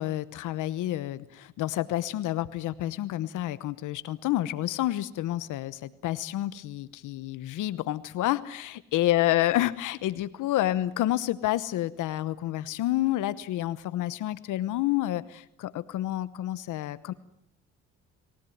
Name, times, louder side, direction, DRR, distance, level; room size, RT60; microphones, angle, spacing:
voice 1, 0.0-17.1, left 14 dB, 85° left, 15 dB, 1.0 m, -29 dB
28.5 x 17.0 x 9.3 m, 0.78 s
cardioid pair, 90°, 30 cm